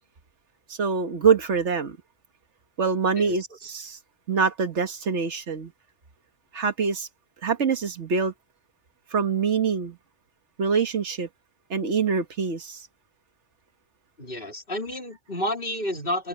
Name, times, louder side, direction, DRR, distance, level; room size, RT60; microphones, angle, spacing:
voice 1, 0.7-2.0 2.8-4.0 4.3-5.7 6.5-7.1 7.4-8.3 9.1-10.0 10.6-11.3 11.7-12.8, right 5 dB, 65° right, 1.7 m, -24 dB
voice 2, 14.2-16.3, left 1 dB, 45° left, 4.3 m, -30 dB
open air
omnidirectional pair, 1.3 m